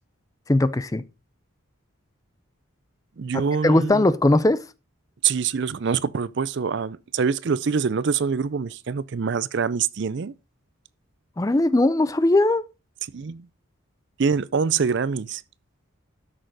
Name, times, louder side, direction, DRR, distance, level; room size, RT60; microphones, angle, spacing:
voice 1, 0.5-1.0 3.3-4.7 11.4-12.7, left 2 dB, 15° left, 0.4 m, -20 dB
voice 2, 3.2-4.1 5.2-10.3 13.1-13.5 14.2-15.4, right 6 dB, 55° right, 0.4 m, -25 dB
12.5 x 6.5 x 4.0 m
head